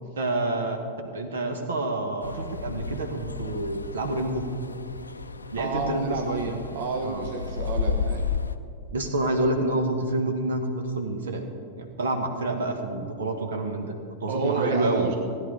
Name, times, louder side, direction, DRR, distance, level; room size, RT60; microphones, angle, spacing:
voice 1, 0.2-0.8 1.1-4.4 5.5-6.6 7.0-7.3 8.9-11.4 11.8-15.1, right 2 dB, 65° right, 5 dB, 1.4 m, -28 dB
sound 1, 2.2-8.6, left 5 dB, 80° left, 0.5 m, -33 dB
voice 2, 5.6-8.2 14.3-15.2, right 3 dB, 50° right, 3 dB, 1.3 m, -30 dB
16.5 x 10.0 x 5.4 m, 2.4 s
figure-of-eight pair, 90°, 0 cm